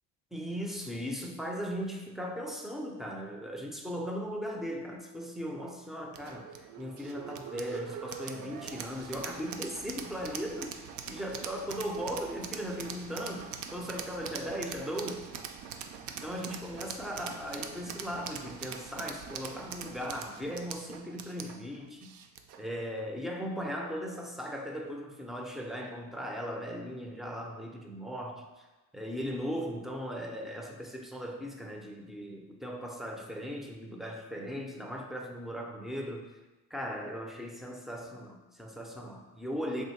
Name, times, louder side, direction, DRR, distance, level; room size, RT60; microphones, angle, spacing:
voice 1, 0.3-15.4 16.2-22.1 22.6-28.7 28.9-36.3 36.7-39.8, equal, ahead, 1 dB, 0.3 m, -38 dB
sound 1, 6.1-22.7, right 7 dB, 70° right, 0.5 m, -43 dB
3.3 x 2.7 x 4.3 m, 1.1 s
cardioid pair, 125°, 31 cm